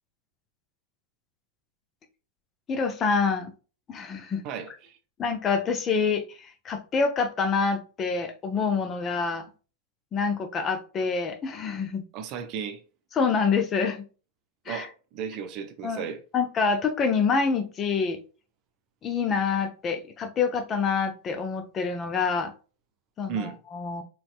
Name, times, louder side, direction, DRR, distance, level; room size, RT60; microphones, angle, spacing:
voice 1, 2.7-3.5 3.9-4.4 5.2-9.5 10.1-12.0 13.1-14.0 14.7-14.9 15.8-16.0 16.3-18.2 19.0-22.5 23.2-24.0, left 5 dB, 25° left, 0.6 m, -26 dB
voice 2, 4.4-5.0 12.1-12.8 14.6-16.2 23.3-23.6, right 7 dB, 40° right, 0.6 m, -35 dB
4.2 x 3.2 x 2.4 m
figure-of-eight pair, 90°, 0 cm